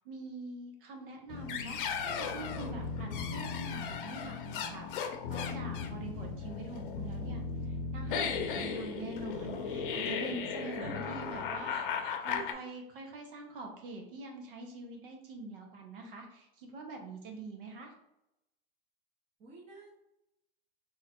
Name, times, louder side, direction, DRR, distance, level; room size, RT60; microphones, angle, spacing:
voice 1, 0.0-11.8 12.2-17.9, right 2 dB, 65° right, 2 dB, 1.3 m, -45 dB
sound 1, 1.3-12.5, left 6 dB, 60° left, 0.7 m, -36 dB
voice 2, 10.6-12.6 19.4-19.9, right 2 dB, 20° right, -3 dB, 0.9 m, -50 dB
3.6 x 3.1 x 4.4 m, 0.87 s
supercardioid pair, 160°, 30 cm